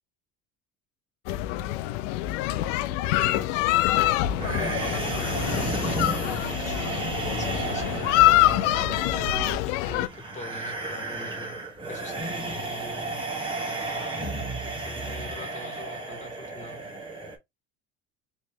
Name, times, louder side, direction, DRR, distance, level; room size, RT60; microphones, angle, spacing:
sound 1, 1.3-10.1, left 15 dB, 85° left, 0.5 m, -25 dB
voice 1, 3.0-8.0 9.6-11.6 11.9-13.2 14.6-16.8, left 3 dB, 20° left, 1.8 m, -43 dB
sound 2, 4.4-17.4, right 2 dB, 15° right, 1.4 m, -33 dB
Summer Evening Berlin Crowd Bridge Admiralsbruecke, 4.4-9.6, right 9 dB, 35° right, 0.5 m, -38 dB
3.2 x 3.1 x 2.9 m
supercardioid pair, 100°, 36 cm